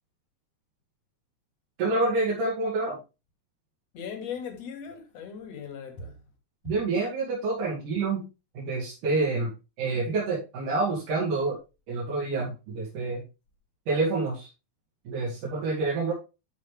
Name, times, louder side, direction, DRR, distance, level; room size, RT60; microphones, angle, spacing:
voice 1, 1.8-3.0 6.7-8.2 8.6-9.5 9.8-11.6 11.9-13.2 13.9-14.5 15.1-16.1, right 3 dB, 85° right, 3.9 m, -27 dB
voice 2, 3.9-6.1, left 6 dB, 60° left, 3.0 m, -38 dB
12.0 x 5.6 x 3.3 m
omnidirectional pair, 3.6 m